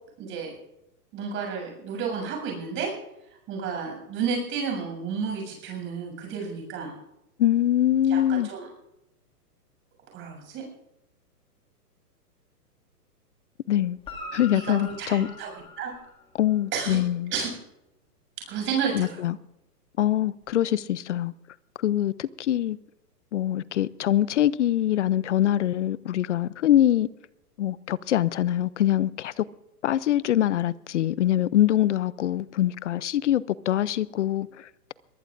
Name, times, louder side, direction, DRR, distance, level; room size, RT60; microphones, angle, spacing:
voice 1, 0.2-0.5 1.1-2.9 3.5-6.9 8.1-8.7 10.1-10.7 14.5-15.5 15.8-15.9 16.7-17.0 17.3-17.5 18.5-19.2, right 6 dB, 25° right, 7.5 m, -31 dB
voice 2, 7.4-8.5 13.7-14.0 14.3-15.3 16.4-17.3 18.9-19.4 20.0-21.3 21.8-22.8 23.3-27.1 27.6-29.5 29.8-34.9, left 12 dB, 50° left, 0.5 m, -24 dB
Guitar, 14.0-16.6 20.4-20.5, left 2 dB, 10° left, 2.2 m, -43 dB
23.0 x 20.0 x 2.6 m
hypercardioid pair, 150°, 48 cm